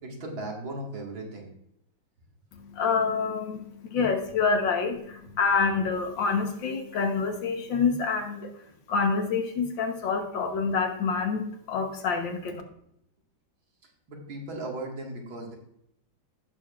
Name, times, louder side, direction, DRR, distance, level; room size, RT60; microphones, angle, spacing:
voice 1, 0.0-1.5 14.1-15.6, right 2 dB, 85° right, -1 dB, 2.8 m, -37 dB
voice 2, 2.5-8.5 8.9-11.4 11.7-12.6, left 5 dB, 70° left, 4 dB, 1.9 m, -27 dB
16.0 x 6.8 x 2.5 m, 0.77 s
omnidirectional pair, 2.1 m